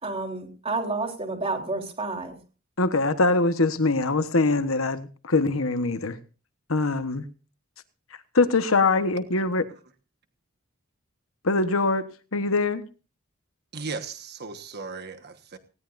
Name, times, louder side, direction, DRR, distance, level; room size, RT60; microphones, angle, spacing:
voice 1, 0.0-2.3, right 3 dB, 30° right, 3.7 m, -30 dB
voice 2, 2.8-6.2 6.7-7.3 8.3-9.7 11.4-12.8, left 3 dB, 75° left, 1.3 m, -23 dB
voice 3, 13.7-15.6, right 4 dB, 55° right, 1.4 m, -36 dB
19.5 x 17.5 x 2.6 m
head